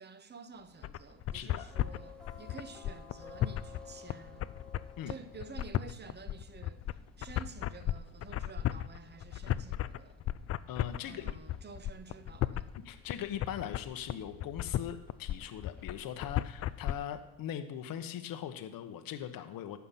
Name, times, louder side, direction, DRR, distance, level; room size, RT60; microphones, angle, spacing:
voice 1, 0.0-4.5 5.1-10.2 11.0-12.7, right 4 dB, 25° right, 0.9 m, -50 dB
sound 1, 0.5-17.2, left 4 dB, ahead, 1.4 m, -57 dB
sound 2, 0.8-16.9, left 13 dB, 35° left, 0.4 m, -34 dB
voice 2, 1.3-1.7 5.0-5.1 10.7-11.3 12.8-19.8, left 10 dB, 55° left, 1.0 m, -40 dB
14.0 x 5.7 x 5.7 m
supercardioid pair, 95°, 42 cm